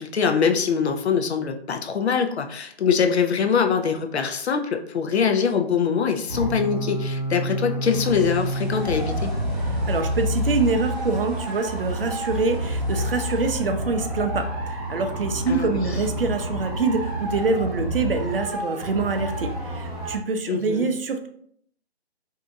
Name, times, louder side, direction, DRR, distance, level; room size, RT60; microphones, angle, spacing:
voice 1, 0.0-9.3 15.5-15.8 20.5-20.9, left 6 dB, 80° left, 5 dB, 0.5 m, -23 dB
sound 1, 6.3-20.2, equal, 35° right, 0.9 m, -28 dB
sound 2, 7.8-13.5, right 1 dB, ahead, 0.7 m, -42 dB
voice 2, 9.9-21.3, right 4 dB, 60° right, 6 dB, 0.5 m, -25 dB
2.7 x 2.4 x 2.6 m, 0.65 s
hypercardioid pair, 165°, 32 cm